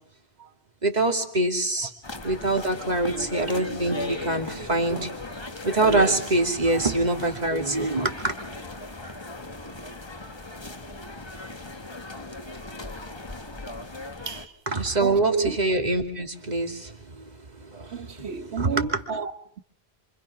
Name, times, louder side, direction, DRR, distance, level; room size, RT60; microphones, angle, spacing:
voice 1, 0.8-1.9 2.2-5.2 5.6-8.3 14.7-17.2 17.6-18.3 18.6-18.9, right 2 dB, 40° right, 2.8 m, -25 dB
sound 1, 2.0-14.5, left 2 dB, 25° left, 1.4 m, -37 dB
voice 2, 14.3-14.6 15.0-15.6 17.9-19.3, right 5 dB, 85° right, 1.6 m, -31 dB
27.5 x 26.0 x 5.9 m
omnidirectional pair, 1.1 m